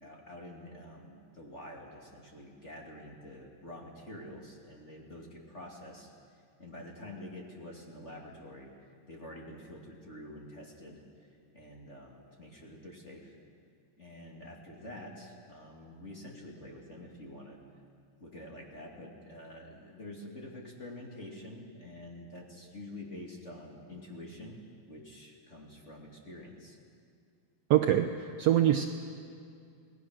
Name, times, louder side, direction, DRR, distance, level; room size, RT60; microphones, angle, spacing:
voice 1, 0.0-6.1 6.6-8.7 9.1-13.4 14.0-17.6 18.2-24.6 24.9-26.8, left 1 dB, 25° left, -1 dB, 2.3 m, -47 dB
voice 2, 27.7-28.9, right 12 dB, 85° right, 4 dB, 1.4 m, -24 dB
28.5 x 19.0 x 6.3 m, 2.4 s
omnidirectional pair, 3.9 m